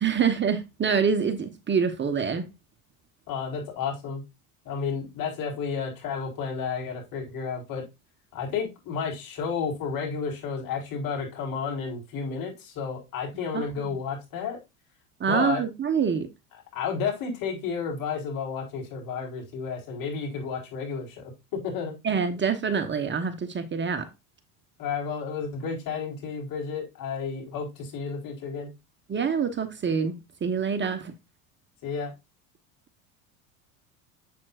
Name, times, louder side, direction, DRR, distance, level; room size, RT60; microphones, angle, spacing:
voice 1, 0.0-2.5 13.5-13.6 15.2-16.3 22.0-24.1 29.1-30.1 30.4-31.1, right 6 dB, 25° right, 1.1 m, -26 dB
voice 2, 3.3-4.2 4.6-7.9 8.3-14.6 15.3-15.6 16.7-21.2 21.5-21.9 24.8-28.7 31.8-32.1, left 6 dB, 55° left, 4.4 m, -31 dB
7.4 x 7.3 x 2.5 m
hypercardioid pair, 85°, 41 cm